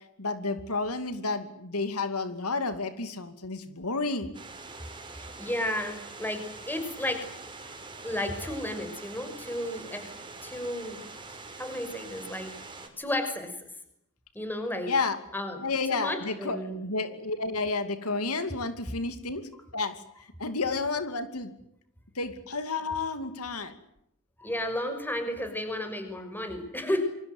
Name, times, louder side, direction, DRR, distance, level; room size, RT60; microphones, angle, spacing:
voice 1, 0.0-4.3 14.9-15.2 15.6-20.0 20.4-21.5 22.1-23.8, left 3 dB, 80° left, 9 dB, 2.6 m, -31 dB
sound 1, 4.3-12.9, right 3 dB, 20° right, 5.1 m, -44 dB
voice 2, 5.1-7.3 8.0-10.1 10.4-11.0 11.6-12.5 13.0-13.7 14.3-14.9 15.3-15.6 15.9-16.8 24.4-27.0, left 1 dB, 10° left, 7 dB, 6.0 m, -33 dB
27.5 x 25.0 x 8.1 m, 0.77 s
head